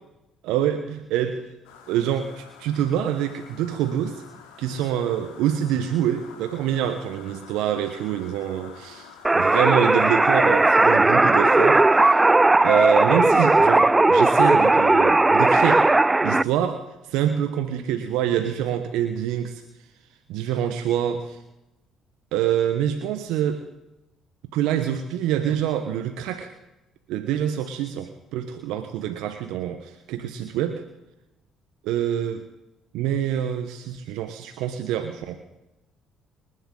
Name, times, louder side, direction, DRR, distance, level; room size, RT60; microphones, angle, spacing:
voice 1, 0.4-1.4 1.9-4.2 4.6-12.2 12.6-15.9 16.2-19.6 20.3-21.4 22.3-23.6 24.5-26.5 27.1-30.8 31.8-32.4 32.9-35.4, right 10 dB, 75° right, 7 dB, 1.2 m, -26 dB
sound 1, 1.6-11.0, left 7 dB, 80° left, 3.1 m, -47 dB
sound 2, 9.2-16.4, right 2 dB, 20° right, 0.4 m, -17 dB
28.0 x 11.0 x 4.0 m, 0.95 s
hypercardioid pair, 55°, 0 cm